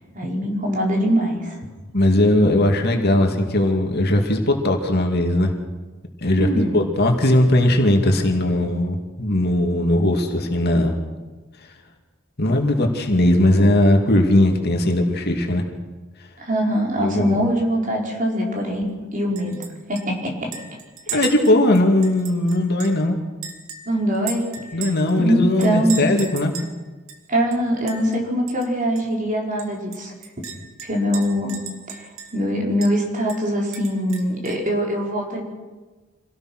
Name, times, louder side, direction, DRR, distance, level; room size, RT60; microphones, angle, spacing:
voice 1, 0.0-1.6 6.4-6.8 16.4-20.5 21.1-21.2 23.9-24.4 24.7-24.9 25.2-26.0 27.3-30.1 30.8-31.6 31.9-35.4, equal, 40° right, 0 dB, 4.8 m, -23 dB
voice 2, 1.9-5.5 6.2-10.9 12.4-15.6 17.0-17.4 21.1-23.2 24.7-26.5, left 1 dB, 50° left, 3 dB, 2.6 m, -19 dB
Chink clink, 19.4-19.7 20.0-20.1 20.5-23.0 23.4-25.2 25.6-26.7 27.1-27.2 27.5-28.2 28.5-28.7 29.0-29.1 29.6-32.5 32.8-32.9 33.3-34.7, right 6 dB, 65° right, 2.5 m, -36 dB
26.5 x 18.0 x 6.3 m, 1.3 s
head